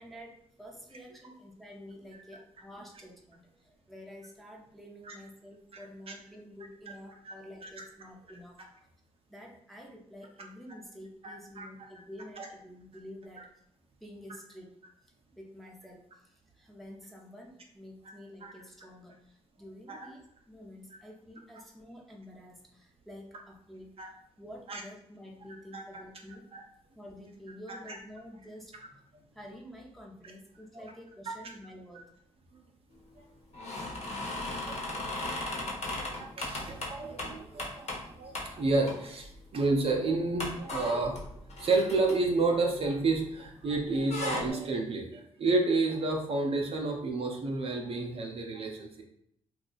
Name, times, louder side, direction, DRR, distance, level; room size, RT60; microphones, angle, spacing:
voice 1, 0.0-8.9 9.3-13.5 14.0-14.7 15.0-24.0 24.4-26.5 26.9-32.1, equal, ahead, -1 dB, 0.8 m, -49 dB
voice 2, 11.2-11.7 12.4-12.5 18.4-18.5 19.9-20.0 24.0-24.1 24.7-24.8 25.7-26.0 26.5-26.6 27.7-28.0 31.9-32.0 32.5-32.6 33.2-33.3 34.5-35.3 35.8-37.9 38.2-41.3 41.6-49.0, right 3 dB, 50° right, 1 dB, 0.6 m, -30 dB
sound 1, 33.5-38.1 38.4-38.5 38.9-39.4 39.7-39.8 40.4-43.4 43.7-44.5, left 2 dB, 60° left, 1.1 m, -37 dB
2.8 x 2.4 x 3.9 m, 0.73 s
cardioid pair, 70°, 12 cm